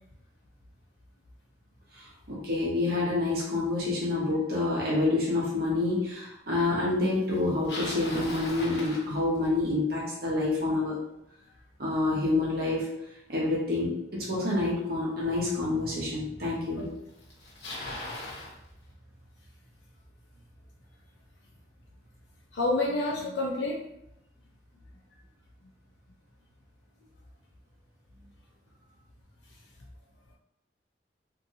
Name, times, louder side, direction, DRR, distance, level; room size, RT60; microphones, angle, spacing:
voice 1, 2.3-10.9 11.8-12.9 13.3-16.9, left 2 dB, 60° right, -4 dB, 1.0 m, -28 dB
Bicycle, 7.3-9.7 14.7-14.8 15.7-15.8 16.8-16.9 17.1-18.5, left 1 dB, 65° left, 1.0 m, -39 dB
voice 2, 22.5-23.8, left 2 dB, 85° left, -2 dB, 0.4 m, -28 dB
2.8 x 2.5 x 2.7 m, 0.82 s
head